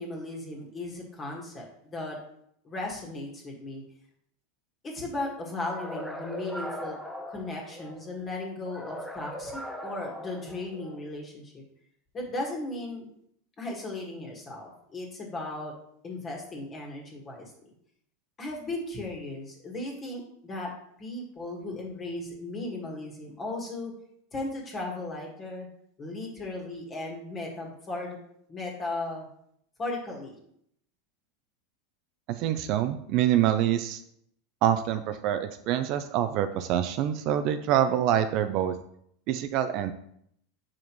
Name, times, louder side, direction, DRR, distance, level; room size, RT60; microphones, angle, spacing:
voice 1, 0.0-2.2 2.6-3.8 4.8-7.0 7.3-11.6 12.1-13.1 13.6-15.7 16.0-17.7 18.4-20.7 21.0-23.9 24.3-25.7 26.0-28.2 28.5-29.3 29.8-30.4, left 2 dB, 20° left, -1 dB, 1.7 m, -36 dB
sound 1, 5.6-8.1 8.6-11.1, equal, 5° left, 0.7 m, -39 dB
voice 2, 32.3-34.0 34.6-38.7 39.3-39.9, right 11 dB, 50° right, 9 dB, 0.4 m, -26 dB
7.1 x 4.9 x 3.1 m, 0.70 s
supercardioid pair, 145°, 0 cm